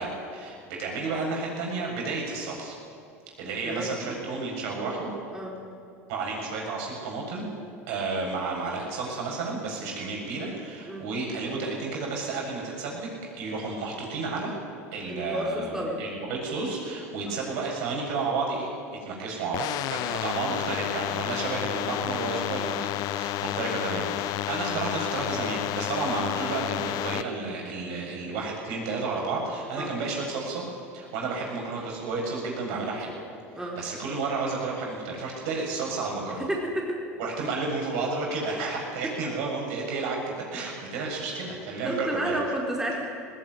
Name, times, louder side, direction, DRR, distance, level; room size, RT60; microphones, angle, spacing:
voice 1, 0.0-2.8 3.4-5.1 6.1-7.5 7.9-13.1 13.4-14.5 14.9-18.7 19.0-30.6 30.9-33.1 33.6-36.4 37.2-42.4, right 3 dB, 70° right, -1 dB, 7.6 m, -31 dB
voice 2, 3.6-4.1 5.3-5.6 10.9-11.0 15.1-16.0 17.3-17.4 29.8-29.9 33.5-33.8 36.4-37.0 39.0-39.1 41.8-43.0, right 1 dB, 10° right, -2 dB, 4.4 m, -31 dB
sound 1, 19.5-27.2, left 16 dB, 55° left, 0.6 m, -31 dB
19.0 x 17.5 x 9.7 m, 2.4 s
hypercardioid pair, 90°, 8 cm